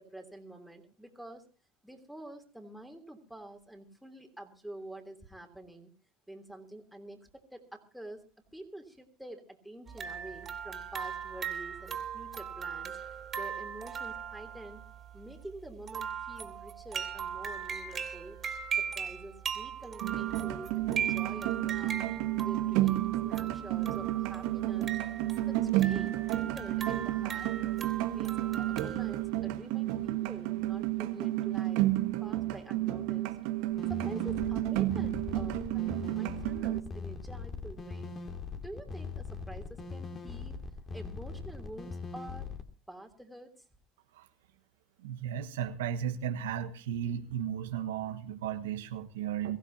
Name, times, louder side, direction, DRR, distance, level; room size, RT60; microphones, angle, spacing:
voice 1, 0.0-1.4 1.8-5.9 6.3-8.2 8.5-13.0 13.3-14.8 15.1-18.4 18.8-22.0 22.4-25.0 25.5-27.5 28.0-31.8 32.2-33.4 33.9-38.1 38.6-40.6 40.9-42.5 42.9-43.6, right 1 dB, ahead, 3 dB, 3.2 m, -47 dB
sound 1, 9.9-29.2, right 7 dB, 30° right, 3.2 m, -39 dB
sound 2, 20.0-36.8, right 16 dB, 70° right, 1.3 m, -31 dB
sound 3, 33.7-42.6, left 4 dB, 30° left, 2.5 m, -41 dB
voice 2, 45.0-49.6, right 9 dB, 85° right, 6 dB, 1.4 m, -35 dB
23.0 x 15.5 x 2.8 m, 0.34 s
supercardioid pair, 100°, 0 cm